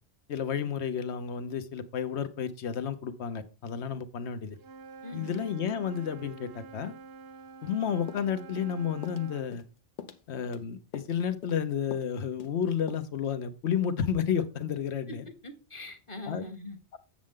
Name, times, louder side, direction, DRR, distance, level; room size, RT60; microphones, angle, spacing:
voice 1, 0.3-4.6 5.1-6.9 7.6-9.6 10.3-15.2 16.3-16.4, left 8 dB, 75° left, 1.1 m, -31 dB
Wind instrument woodwind instrument, 4.5-9.5, right 4 dB, 65° right, 0.8 m, -48 dB
voice 2, 5.0-5.4 15.1-16.8, left 2 dB, 30° left, 1.1 m, -42 dB
sound 1, 8.1-8.7 9.0-9.3 9.5-9.7 10.0-10.6 10.9-11.2 11.4-11.6 11.9-12.1 12.4-12.6 12.9-13.0, left 7 dB, 55° left, 0.7 m, -43 dB
7.5 x 7.3 x 3.6 m
omnidirectional pair, 1.1 m